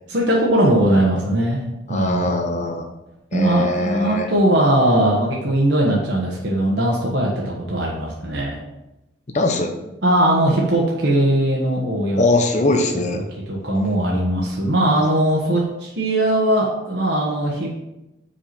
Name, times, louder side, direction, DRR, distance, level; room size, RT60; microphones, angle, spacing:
voice 1, 0.1-1.6 1.9-2.3 3.3-8.6 10.0-12.2 12.7-12.8 13.1-13.2 13.5-17.8, right 1 dB, 60° right, -3 dB, 1.2 m, -19 dB
voice 2, 1.9-2.9 3.3-4.3 9.3-9.7 12.2-13.2, left 2 dB, 40° left, 3 dB, 0.7 m, -21 dB
5.1 x 4.8 x 5.9 m, 0.94 s
head